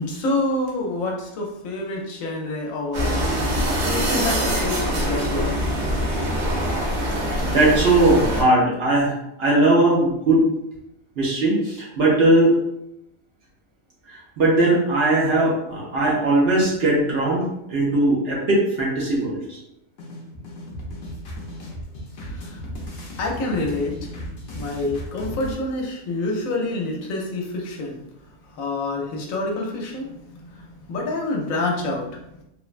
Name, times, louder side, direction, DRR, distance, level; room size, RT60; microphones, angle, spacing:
voice 1, 0.0-3.2 3.9-5.6 22.3-22.6 23.2-23.9 24.5-28.0 28.5-32.4, left 2 dB, 75° left, 0 dB, 1.0 m, -27 dB
sound 1, 2.9-8.4, equal, 80° right, 1.2 m, -24 dB
voice 2, 7.4-10.5 11.2-12.6 14.1-19.6, right 2 dB, 55° right, -4 dB, 0.8 m, -19 dB
sound 2, 20.0-25.5, equal, 60° left, 0.7 m, -35 dB
3.2 x 2.1 x 2.4 m, 0.82 s
omnidirectional pair, 1.4 m